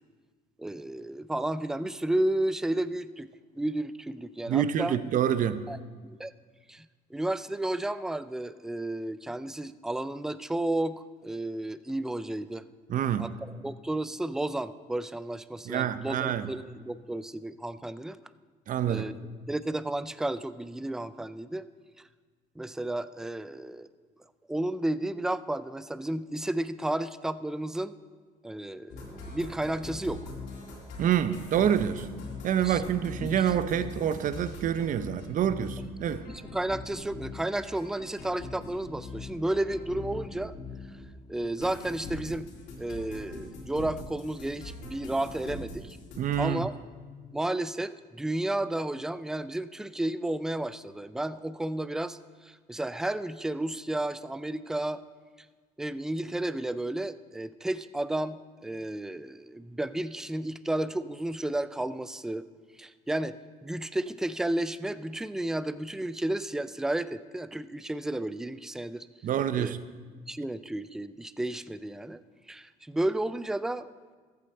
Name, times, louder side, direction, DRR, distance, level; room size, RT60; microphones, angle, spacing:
voice 1, 0.6-5.0 5.7-5.8 6.0-6.3 6.7-6.9 7.1-12.6 13.2-18.2 18.9-19.1 19.5-21.6 22.6-23.9 24.5-27.9 28.4-30.2 32.6-32.8 33.2-33.3 36.5-40.5 41.3-42.5 42.8-46.0 46.4-46.9 47.3-55.0 55.8-62.4 62.8-69.1 69.5-69.7 70.3-72.2 72.5-73.9, right 1 dB, 5° right, 14 dB, 0.3 m, -32 dB
voice 2, 4.5-5.7 12.9-13.3 15.7-16.5 18.7-19.1 31.0-32.1 32.4-36.3 46.2-46.7 69.2-69.8, right 9 dB, 50° right, 13 dB, 0.6 m, -27 dB
sound 1, 28.9-41.1 41.4-46.4, left 3 dB, 85° left, 2.9 m, -41 dB
14.5 x 8.5 x 4.4 m, 1.5 s
cardioid pair, 110°, 17 cm